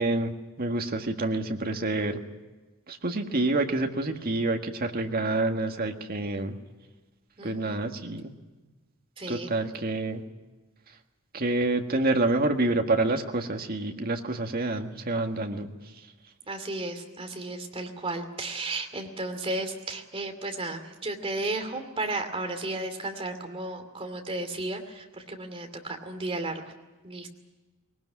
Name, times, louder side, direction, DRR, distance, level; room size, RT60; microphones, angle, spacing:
voice 1, 0.0-2.2 2.9-6.6 7.4-8.3 9.3-10.2 11.3-15.7, right 2 dB, 45° right, 4 dB, 1.7 m, -28 dB
voice 2, 7.4-7.8 9.2-9.5 16.5-26.6 27.0-27.3, right 2 dB, 25° right, 5 dB, 2.7 m, -34 dB
20.5 x 19.0 x 9.6 m, 1.2 s
head